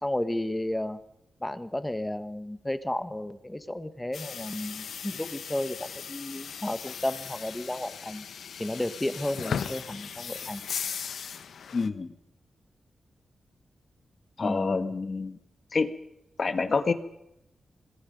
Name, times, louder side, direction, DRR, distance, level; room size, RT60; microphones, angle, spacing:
voice 1, 0.0-1.0 1.4-8.2 8.6-10.6 14.4-14.9, left 1 dB, 10° left, 11 dB, 1.3 m, -33 dB
sound 1, 4.1-11.9, left 7 dB, 90° left, 1.1 m, -37 dB
voice 2, 11.7-12.1 14.4-15.4 15.7-15.9 16.4-16.9, left 4 dB, 45° left, 9 dB, 1.5 m, -27 dB
26.0 x 20.5 x 5.3 m, 0.82 s
wide cardioid pair, 120°, 0 cm